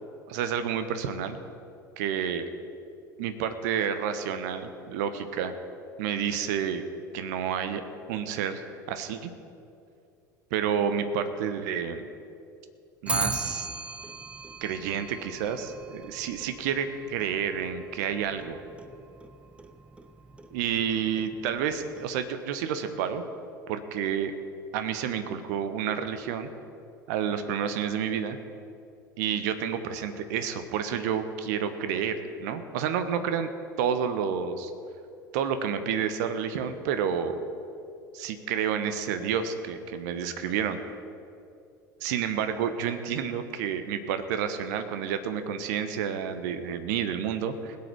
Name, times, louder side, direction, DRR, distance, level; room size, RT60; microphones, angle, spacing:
voice 1, 0.3-1.4 2.0-2.5 3.2-5.5 6.0-6.8 7.1-7.8 8.1-8.6 8.9-9.3 10.5-12.1 13.0-13.7 14.6-18.6 20.5-23.2 23.7-24.3 24.7-26.5 27.1-28.4 29.2-33.5 33.8-34.7 35.3-37.4 38.1-40.8 42.0-47.8, right 8 dB, 60° right, 9 dB, 1.1 m, -29 dB
Clock, 13.1-22.4, right 3 dB, 10° right, 0.7 m, -39 dB
20.5 x 8.7 x 4.6 m, 2.6 s
figure-of-eight pair, 70°, 10 cm